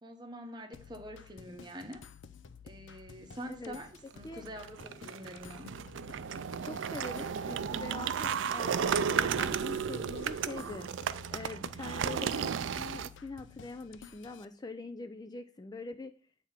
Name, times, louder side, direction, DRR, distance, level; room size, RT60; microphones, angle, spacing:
voice 1, 0.0-2.0 2.6-5.7, equal, 25° right, 1.0 m, -45 dB
sound 1, 0.7-14.4, left 6 dB, 85° left, 0.5 m, -53 dB
voice 2, 3.5-3.8 4.2-4.4 6.6-10.9 11.3-16.1, left 3 dB, 20° left, 0.4 m, -43 dB
sound 2, 4.5-13.1, right 7 dB, 85° right, 0.4 m, -34 dB
8.7 x 3.5 x 5.7 m
head